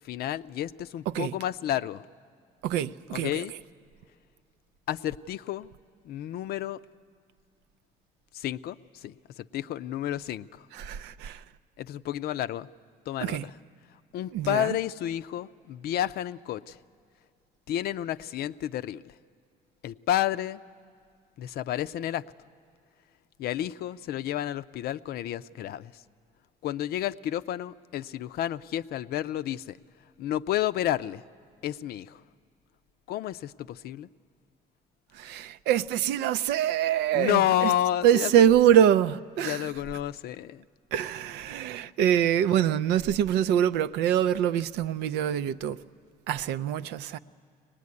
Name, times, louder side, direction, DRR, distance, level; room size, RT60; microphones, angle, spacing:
voice 1, 0.1-2.0 3.1-3.5 4.9-5.7 6.1-6.8 8.3-8.8 9.0-9.1 9.5-10.5 11.8-12.7 13.1-13.5 14.1-16.8 17.7-19.0 19.8-20.6 21.4-22.2 23.4-25.9 26.6-29.8 30.2-31.2 31.6-32.2 33.1-34.1 37.1-38.3 39.4-40.6, left 12 dB, 70° left, 0.5 m, -30 dB
voice 2, 1.1-1.4 2.6-3.4 10.7-11.4 13.2-13.5 14.3-14.8 35.1-37.7 38.0-39.7 40.9-45.8 46.3-47.2, right 10 dB, 85° right, 0.5 m, -24 dB
23.0 x 19.5 x 9.6 m
cardioid pair, 110°, 17 cm